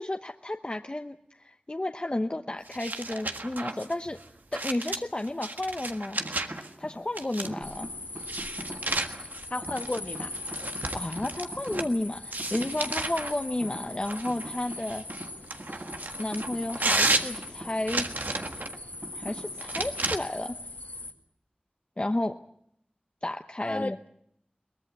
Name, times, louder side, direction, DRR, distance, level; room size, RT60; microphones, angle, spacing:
voice 1, 0.0-4.2 4.5-6.2 6.8-7.9 10.9-15.0 16.2-18.1 19.1-20.6 22.0-22.4 23.2-24.0, left 1 dB, 35° left, 5 dB, 0.9 m, -32 dB
sound 1, 2.7-6.7 7.2-7.7 8.2-11.9 12.3-13.4 14.0-18.8 19.6-20.2, right 2 dB, 80° right, 1.5 m, -33 dB
sound 2, 6.2-20.3, right 1 dB, 55° right, 4.0 m, -45 dB
sound 3, 7.6-21.1, left 2 dB, 70° left, 2.1 m, -40 dB
voice 2, 9.5-10.3 23.6-24.1, left 2 dB, 50° left, 8 dB, 1.5 m, -33 dB
22.5 x 20.0 x 8.2 m, 0.70 s
wide cardioid pair, 55°, 3 cm